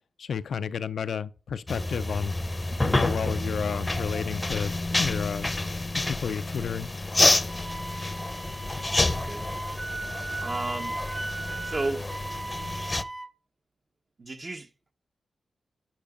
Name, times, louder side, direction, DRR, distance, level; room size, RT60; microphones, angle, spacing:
voice 1, 0.2-2.3 2.7-5.5 6.0-6.9, left 7 dB, 75° left, 0.4 m, -32 dB
sound 1, 1.7-13.0, left 2 dB, 30° left, 0.6 m, -28 dB
Wind instrument woodwind instrument, 7.5-13.3, right 2 dB, 20° right, 0.8 m, -37 dB
voice 2, 9.1-9.5 10.4-11.0 11.6-12.1 14.2-14.7, right 2 dB, 45° right, 1.1 m, -32 dB
11.5 x 4.8 x 2.5 m
supercardioid pair, 45°, 0 cm